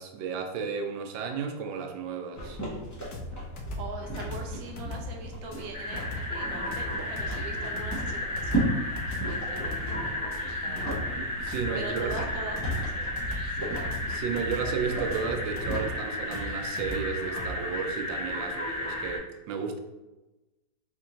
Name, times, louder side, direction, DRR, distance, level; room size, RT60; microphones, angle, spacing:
voice 1, 0.0-2.6 11.4-12.1 14.1-19.8, right 6 dB, 85° right, 5 dB, 1.3 m, -33 dB
sound 1, 2.3-15.9, right 1 dB, 20° left, 0.5 m, -36 dB
sound 2, 3.1-17.5, left 1 dB, 75° left, 1.2 m, -39 dB
voice 2, 3.8-8.7 9.1-10.9 11.7-13.8, right 3 dB, 65° right, 1 dB, 0.9 m, -42 dB
sound 3, 5.7-19.2, left 1 dB, 40° left, 1.1 m, -34 dB
4.4 x 2.5 x 2.8 m, 1.1 s
omnidirectional pair, 2.0 m